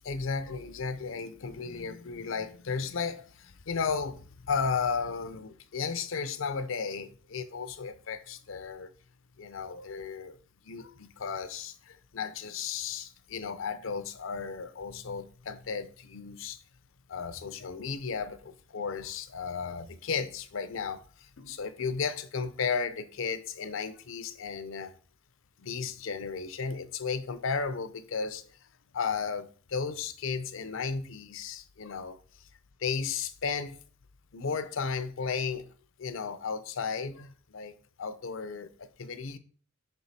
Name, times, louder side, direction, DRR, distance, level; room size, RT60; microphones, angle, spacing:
voice 1, 0.0-8.9 9.4-10.4 10.6-16.6 17.1-24.9 25.6-28.5 28.9-32.2 32.8-33.8 34.3-35.7 36.0-39.4, left 5 dB, 70° left, 0.6 m, -34 dB
5.6 x 4.6 x 4.1 m
head